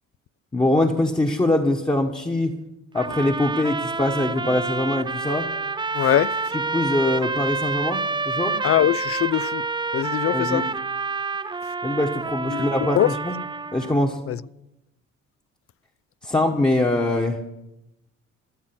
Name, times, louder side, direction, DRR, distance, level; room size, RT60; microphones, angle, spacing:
voice 1, 0.5-2.6 2.9-5.5 6.7-8.6 10.3-10.7 11.8-13.3 13.7-14.2 16.2-17.5, left 1 dB, 15° left, 1.3 m, -23 dB
Trumpet - Csharp natural minor, 2.9-14.0, right 4 dB, 15° right, 0.6 m, -28 dB
voice 2, 5.9-6.4 8.6-9.7 9.9-10.7 12.5-13.2 14.3-14.4, left 12 dB, 50° left, 0.4 m, -22 dB
14.5 x 7.3 x 9.7 m
cardioid pair, 90°, 30 cm